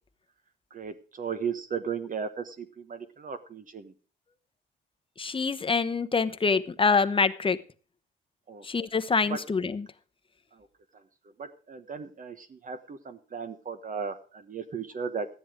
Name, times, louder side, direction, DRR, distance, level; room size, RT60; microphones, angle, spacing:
voice 1, 0.7-3.9 8.5-8.6 9.3-9.4 11.4-15.3, right 6 dB, 40° right, 10 dB, 1.2 m, -36 dB
voice 2, 5.2-7.6 8.6-9.9, left 4 dB, 25° left, 10 dB, 1.0 m, -25 dB
13.0 x 10.0 x 4.9 m, 0.38 s
cardioid pair, 90°, 20 cm